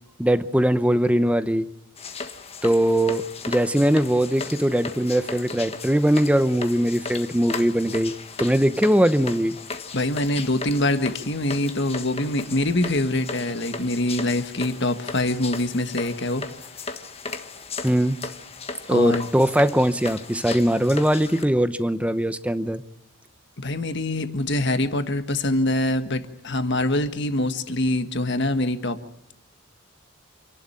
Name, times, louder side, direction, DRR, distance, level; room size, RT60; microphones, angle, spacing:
voice 1, 0.2-1.7 2.6-9.6 17.8-18.2 18.9-22.8, equal, 5° right, 13 dB, 0.8 m, -21 dB
sound 1, 2.0-21.4, left 4 dB, 30° left, 1.4 m, -36 dB
voice 2, 9.9-16.4 18.9-19.3 23.6-29.0, left 1 dB, 55° left, 9 dB, 1.6 m, -24 dB
28.0 x 11.5 x 10.0 m, 0.80 s
head